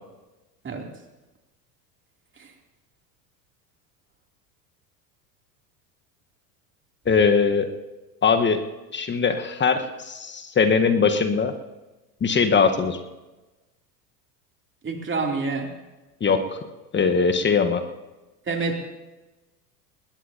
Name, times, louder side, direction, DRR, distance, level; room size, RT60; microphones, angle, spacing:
voice 1, 7.1-7.7 8.2-8.6 8.9-11.5 12.2-13.0 16.2-16.6 16.9-17.8, left 5 dB, 20° left, 8 dB, 1.2 m, -21 dB
voice 2, 14.8-15.7 18.5-18.9, right 4 dB, 25° right, 2 dB, 2.8 m, -27 dB
20.5 x 19.0 x 2.8 m, 1.1 s
hypercardioid pair, 80°, 49 cm